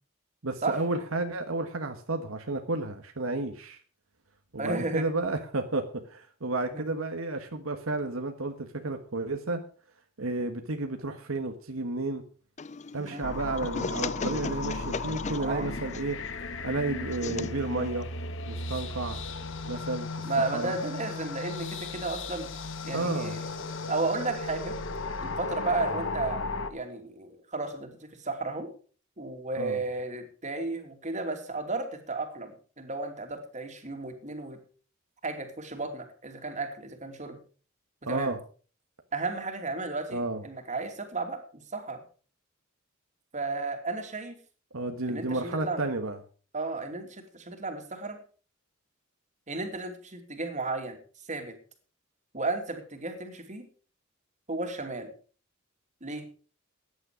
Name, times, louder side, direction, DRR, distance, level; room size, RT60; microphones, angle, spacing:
voice 1, 0.4-3.8 4.5-9.6 10.2-12.2 12.9-16.2 16.6-18.1 18.5-19.2 19.7-20.2 20.5-20.7 22.9-23.4 29.6-29.8 38.1-38.4 40.1-40.4 44.7-46.2, right 2 dB, 75° right, 5 dB, 1.4 m, -32 dB
voice 2, 4.6-5.1 6.7-6.9 13.0-13.3 15.3-15.7 20.2-22.5 22.8-23.4 23.9-24.8 25.2-26.4 26.7-28.7 29.2-34.6 35.2-37.4 38.0-38.3 39.1-42.0 43.3-44.4 45.1-45.9 46.5-48.2 49.5-51.0 51.3-51.6 52.3-53.7 54.5-55.1 56.0-56.3, right 3 dB, 35° right, 5 dB, 2.8 m, -33 dB
sound 1, 12.6-19.2, left 4 dB, 35° left, 0.5 m, -38 dB
sound 2, 13.2-26.7, left 3 dB, 65° left, 1.4 m, -36 dB
15.0 x 10.0 x 5.0 m, 0.39 s
head